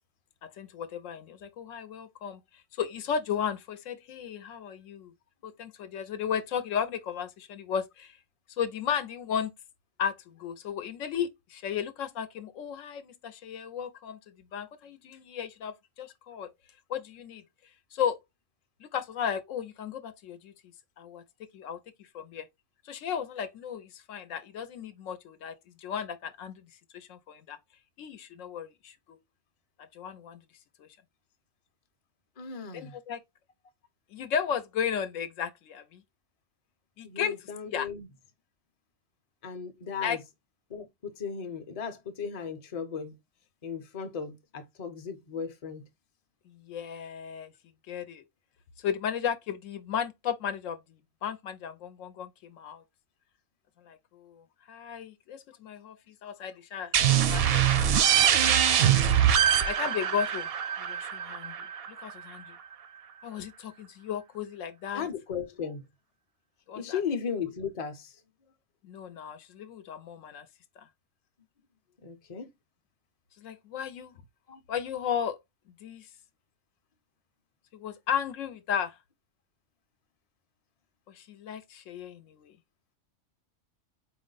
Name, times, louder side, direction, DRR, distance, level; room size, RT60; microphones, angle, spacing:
voice 1, 0.4-2.4 2.8-5.1 5.4-8.2 8.6-9.5 10.0-14.2 14.5-16.5 16.9-17.4 17.9-18.2 18.8-20.5 21.0-21.2 21.5-21.8 22.1-22.5 22.8-26.6 26.9-27.6 28.0-29.2 29.9-30.4 30.8-30.9 32.7-33.2 34.1-36.0 37.0-37.4 37.7-37.9 40.0-40.2 46.5-47.5 47.9-48.2 48.8-52.8 53.9-56.9 57.3-57.6 59.6-60.5 60.8-61.5 61.9-62.6 63.2-65.1 66.7-67.0 68.8-70.5 70.8-70.9 73.4-74.1 74.7-75.4 75.8-76.1 77.7-79.0 81.1-82.5, left 8 dB, 80° left, 0.9 m, -34 dB
voice 2, 32.4-33.0 37.0-38.1 39.4-40.2 40.7-43.1 43.6-45.8 64.9-65.8 66.8-68.1 72.0-72.5 74.5-74.6, left 6 dB, 35° left, 0.6 m, -36 dB
sound 1, 56.9-62.4, right 9 dB, 65° right, 0.6 m, -24 dB
4.6 x 2.0 x 3.8 m
omnidirectional pair, 1.3 m